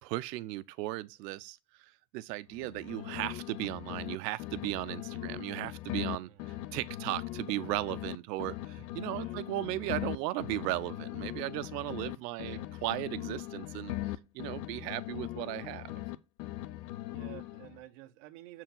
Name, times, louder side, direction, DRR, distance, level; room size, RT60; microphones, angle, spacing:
voice 1, 0.0-15.9, right 18 dB, 75° right, 0.7 m, -36 dB
sound 1, 2.5-4.1 4.4-8.1 8.4-12.1 12.4-16.1 16.4-17.8, left 16 dB, 90° left, 0.7 m, -40 dB
voice 2, 6.3-6.6 8.5-8.6 9.0-9.4 12.3-12.7 17.0-18.6, right 15 dB, 50° right, 0.9 m, -51 dB
6.9 x 4.6 x 3.8 m
supercardioid pair, 175°, 49 cm